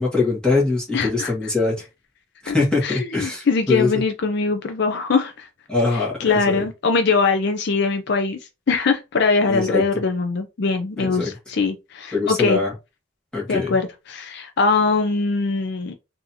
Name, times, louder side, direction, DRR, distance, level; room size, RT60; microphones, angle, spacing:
voice 1, 0.0-1.8 2.4-3.9 5.7-6.6 9.4-9.8 11.0-11.3 12.1-12.7 13.3-13.8, left 3 dB, 5° left, 1.5 m, -22 dB
voice 2, 0.9-1.3 2.5-2.6 2.8-5.5 5.9-8.4 8.7-12.6 13.5-15.9, left 4 dB, 55° left, 0.5 m, -22 dB
3.8 x 2.7 x 2.8 m
head